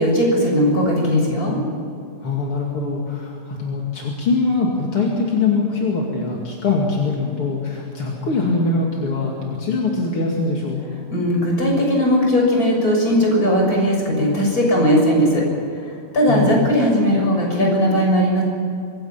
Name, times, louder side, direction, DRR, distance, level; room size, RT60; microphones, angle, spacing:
voice 1, 0.0-1.6 11.1-15.4 16.1-18.4, equal, 15° left, 0 dB, 6.4 m, -18 dB
voice 2, 2.2-10.8 16.3-16.5, left 3 dB, 40° left, -2 dB, 2.1 m, -22 dB
25.5 x 23.5 x 5.9 m, 2.5 s
omnidirectional pair, 5.8 m